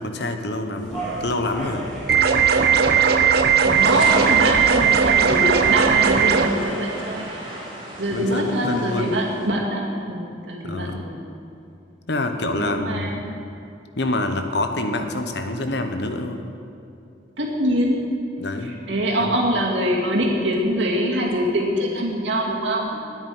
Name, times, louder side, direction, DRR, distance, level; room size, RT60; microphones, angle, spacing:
voice 1, 0.0-1.9 8.1-9.1 10.6-11.0 12.1-13.2 14.0-16.4 18.4-18.7 19.2-19.3, left 2 dB, 60° left, 6 dB, 1.0 m, -26 dB
sound 1, 0.7-6.1, right 1 dB, ahead, 3.8 m, -35 dB
sound 2, 2.1-6.5, right 7 dB, 55° right, 0.9 m, -17 dB
voice 2, 3.6-7.4 8.0-11.2 12.4-13.3 17.4-18.1 18.6-23.0, equal, 75° right, -2 dB, 2.4 m, -24 dB
sound 3, 3.7-9.5, right 1 dB, 30° right, 3.3 m, -33 dB
9.9 x 8.9 x 9.8 m, 2.7 s
head